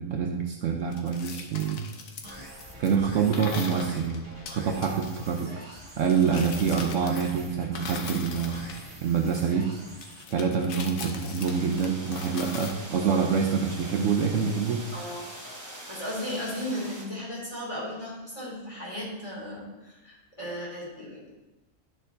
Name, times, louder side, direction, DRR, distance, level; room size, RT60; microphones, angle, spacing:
voice 1, 0.0-1.8 2.8-4.3 4.5-5.5 6.0-8.7 9.0-9.7 10.3-14.8, right 6 dB, 65° right, 2 dB, 1.0 m, -26 dB
sound 1, 0.9-3.0 3.3-5.3 6.0-7.4 7.7-9.4 10.0-12.7, left 5 dB, 70° left, 1.2 m, -40 dB
sound 2, 2.2-10.2, right 1 dB, 45° right, 1.9 m, -46 dB
sound 3, 11.3-17.0, right 1 dB, 15° right, 1.0 m, -43 dB
voice 2, 14.9-15.3 15.9-21.2, equal, 20° left, -6 dB, 2.5 m, -35 dB
10.5 x 6.6 x 2.6 m, 1.1 s
omnidirectional pair, 1.5 m